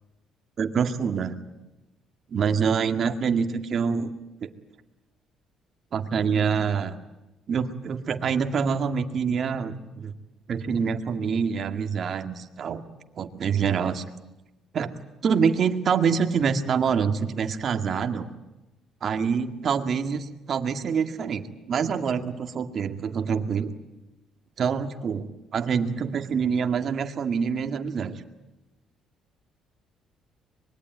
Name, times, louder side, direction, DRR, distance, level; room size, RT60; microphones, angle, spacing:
voice 1, 0.6-1.4 2.3-4.1 4.4-4.5 5.9-7.0 7.5-10.1 10.5-12.8 13.2-14.0 14.7-14.9 15.2-18.3 19.0-23.7 24.6-28.2, right 6 dB, 50° right, 7 dB, 2.0 m, -26 dB
25.0 x 21.5 x 9.5 m, 1.0 s
cardioid pair, 90°, 0 cm